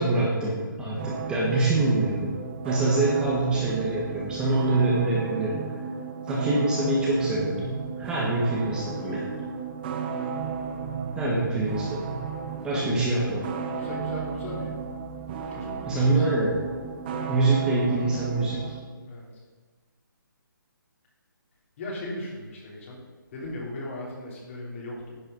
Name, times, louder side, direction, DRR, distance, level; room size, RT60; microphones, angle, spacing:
voice 1, 0.0-2.4 2.6-5.8 6.3-9.3 11.1-12.3 12.6-13.5 15.8-16.6 17.3-18.7, right 2 dB, 5° right, -5 dB, 1.4 m, -25 dB
sound 1, 1.0-18.8, right 6 dB, 25° right, 0.9 m, -34 dB
voice 2, 12.7-14.7 15.5-16.0 19.0-19.3 21.8-23.0 23.3-25.2, left 1 dB, 35° left, -3 dB, 3.5 m, -38 dB
10.5 x 8.6 x 5.3 m, 1.4 s
figure-of-eight pair, 145°, 12 cm